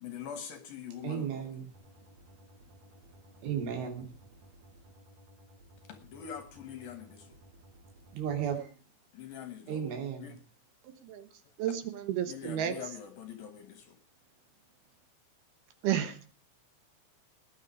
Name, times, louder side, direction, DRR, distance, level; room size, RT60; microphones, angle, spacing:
voice 1, 0.0-1.5 5.9-7.4 9.1-10.3 12.3-14.0, left 8 dB, 65° left, 9 dB, 2.5 m, -44 dB
voice 2, 1.0-1.7 3.4-4.2 8.1-8.7 9.7-10.4, right 8 dB, 85° right, 4 dB, 5.3 m, -34 dB
sound 1, 1.7-8.6, equal, 40° right, 3.6 m, -57 dB
voice 3, 10.8-11.3 11.6-12.7 15.8-16.3, right 10 dB, 70° right, 10 dB, 2.8 m, -32 dB
19.5 x 9.7 x 4.8 m, 0.38 s
omnidirectional pair, 5.4 m